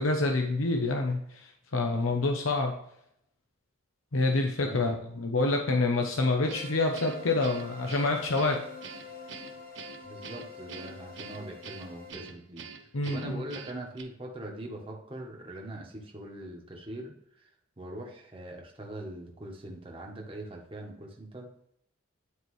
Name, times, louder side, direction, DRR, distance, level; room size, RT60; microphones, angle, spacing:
voice 1, 0.0-2.7 4.1-8.6 12.9-13.4, left 2 dB, 80° left, 3 dB, 0.9 m, -27 dB
voice 2, 4.6-4.9 10.0-17.5 17.8-21.5, right 1 dB, 25° right, -1 dB, 1.3 m, -42 dB
sound 1, 6.4-12.1, left 4 dB, 40° left, 1.2 m, -46 dB
Guitar, 6.5-14.0, right 6 dB, 60° right, 0.8 m, -45 dB
9.7 x 4.6 x 3.2 m, 0.73 s
head